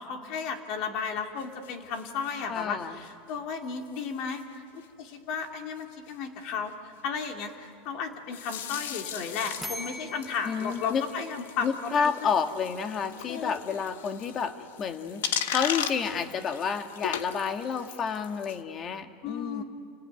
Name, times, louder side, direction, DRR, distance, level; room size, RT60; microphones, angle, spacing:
voice 1, 0.0-12.3 13.3-13.6 19.2-19.6, left 6 dB, 60° left, 4 dB, 3.0 m, -34 dB
sound 1, 1.4-3.3 3.8-4.1 4.3-4.6 4.8-4.9 5.1-5.2 5.4-5.5 5.8-6.1 8.3-18.6, left 9 dB, 85° left, 1.4 m, -38 dB
voice 2, 2.5-2.9 10.5-11.0 11.6-19.6, left 6 dB, 35° left, 7 dB, 1.8 m, -30 dB
sound 2, 9.6-12.4, left 1 dB, 5° left, 0.9 m, -43 dB
29.5 x 19.5 x 9.4 m, 2.2 s
supercardioid pair, 115°, 0 cm